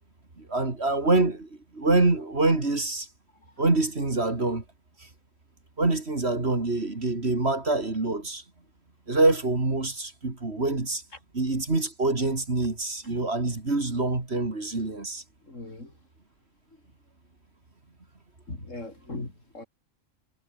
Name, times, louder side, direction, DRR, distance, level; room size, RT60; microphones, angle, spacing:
voice 1, 0.4-3.1 3.6-4.6 5.8-8.4 9.1-11.0 11.3-15.2, right 2 dB, 45° right, 3.5 m, -25 dB
voice 2, 15.5-15.9 18.5-19.6, left 2 dB, 60° left, 5.1 m, -39 dB
omnidirectional pair, 1.5 m